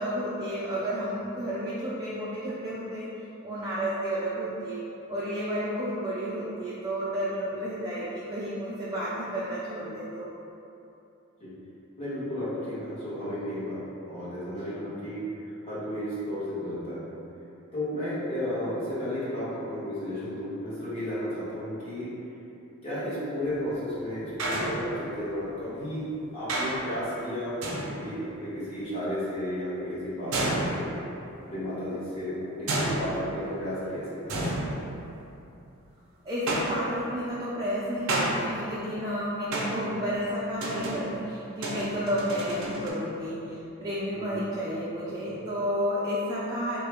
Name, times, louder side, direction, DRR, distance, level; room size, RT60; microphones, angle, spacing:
voice 1, 0.0-3.1 3.4-4.8 5.1-10.3 14.6-14.8 36.2-46.8, equal, 20° right, -9 dB, 0.4 m, -31 dB
voice 2, 12.0-17.1 17.7-22.1 22.8-26.1 26.3-30.9 31.3-34.5 44.1-44.3, equal, 30° left, -12 dB, 1.3 m, -33 dB
sound 1, 23.4-23.9 24.4-25.4 26.5-27.0 27.6-28.3 30.3-31.3 32.7-33.6 34.3-35.5 36.5-37.2 38.1-38.9 39.5-40.1 40.6-42.9, right 1 dB, 75° right, 0.5 m, -31 dB
3.7 x 2.2 x 3.3 m, 2.8 s
head